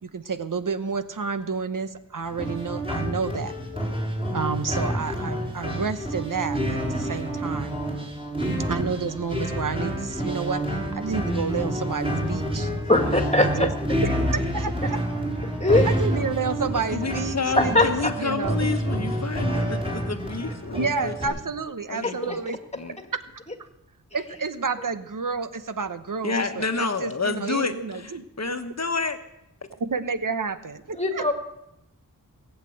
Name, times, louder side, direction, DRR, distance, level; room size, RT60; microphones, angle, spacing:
voice 1, 0.0-3.5 4.3-7.8 8.7-12.7 13.4-13.7 14.0-15.0 15.8-18.7 20.7-22.6 23.1-23.2 23.6-23.7 24.1-28.2 29.7-31.3, right 5 dB, 70° right, 10 dB, 1.0 m, -30 dB
sound 1, 2.2-21.3, equal, 15° right, 4.8 m, -28 dB
voice 2, 12.9-13.7 15.6-15.9 17.6-18.1 20.4-20.5 31.0-31.3, left 2 dB, 20° left, 4 dB, 2.1 m, -20 dB
voice 3, 16.7-21.4 21.9-22.4 22.8-23.0 26.2-29.2, left 4 dB, 50° left, 7 dB, 1.2 m, -29 dB
19.0 x 8.3 x 7.8 m, 0.83 s
wide cardioid pair, 75°, 34 cm